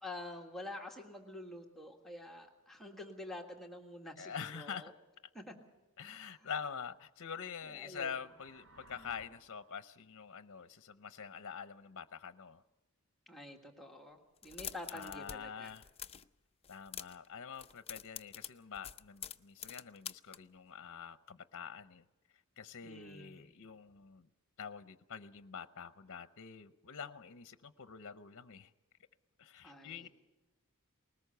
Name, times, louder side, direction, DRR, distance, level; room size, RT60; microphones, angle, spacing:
voice 1, 0.0-4.9 5.3-5.5 6.1-6.4 7.6-8.2 13.3-15.7 22.8-23.5 29.6-30.1, left 1 dB, ahead, 0 dB, 1.7 m, -48 dB
voice 2, 4.2-4.9 6.0-12.6 14.9-15.9 16.7-22.0 22.6-24.3 24.6-28.7 29.4-30.1, left 6 dB, 60° left, 12 dB, 0.7 m, -46 dB
sound 1, 7.9-9.2, right 1 dB, 90° right, 5.0 m, -60 dB
sound 2, 14.4-15.4 15.6-16.3 16.6-17.3 17.5-20.4, left 9 dB, 25° left, 0.6 m, -46 dB
20.5 x 19.0 x 6.9 m, 1.1 s
head